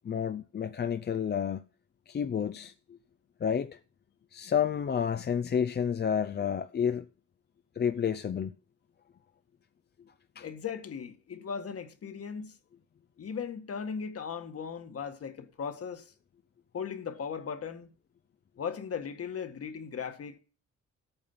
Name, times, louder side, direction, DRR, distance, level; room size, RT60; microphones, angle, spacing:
voice 1, 0.0-1.6 2.1-3.0 3.4-3.8 4.3-7.1 7.8-8.5 10.4-10.5, left 7 dB, 35° left, 0.6 m, -30 dB
voice 2, 10.4-12.6 13.2-16.1 16.7-17.9 18.6-20.4, left 6 dB, 50° left, 1.8 m, -37 dB
13.5 x 8.9 x 5.7 m
cardioid pair, 90°, 30 cm